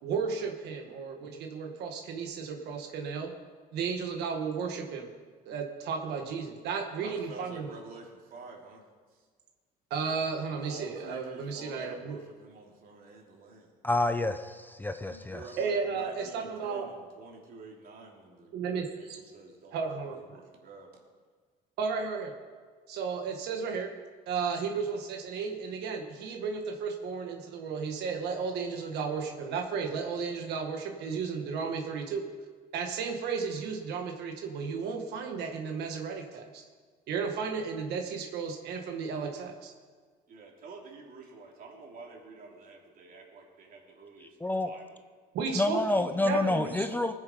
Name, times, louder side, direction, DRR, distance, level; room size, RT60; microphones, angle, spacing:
voice 1, 0.0-3.3 3.7-5.1 5.4-7.7 9.9-12.2 15.6-16.9 18.5-19.2 19.7-20.2 21.8-22.3 22.9-23.9 24.3-32.3 32.7-36.6 37.1-39.7 45.3-46.8, right 5 dB, 80° right, 3 dB, 1.5 m, -34 dB
voice 2, 7.0-8.8 9.1-9.3 10.5-13.7 15.0-18.5 18.9-21.0 40.3-44.4 44.6-45.0 45.5-47.1, right 3 dB, 55° right, -1 dB, 3.0 m, -49 dB
voice 3, 13.8-15.4 44.4-44.7 45.5-47.1, left 2 dB, 10° left, 8 dB, 0.6 m, -28 dB
19.0 x 7.4 x 5.1 m, 1.5 s
cardioid pair, 110°, 17 cm